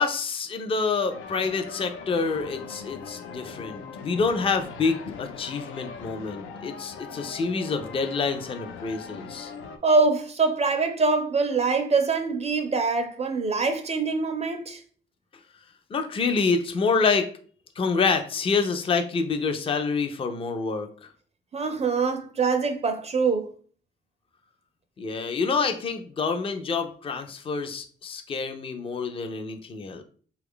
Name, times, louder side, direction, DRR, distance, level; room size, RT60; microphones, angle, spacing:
voice 1, 0.0-9.5 15.9-17.3 17.8-21.1 25.0-30.0, left 4 dB, 30° left, 0.4 m, -27 dB
sound 1, 1.1-9.8, left 5 dB, 85° left, 0.5 m, -40 dB
voice 2, 9.8-14.8 21.5-23.5, right 4 dB, 35° right, 0.5 m, -24 dB
3.1 x 2.3 x 3.6 m
cardioid pair, 90°, 20 cm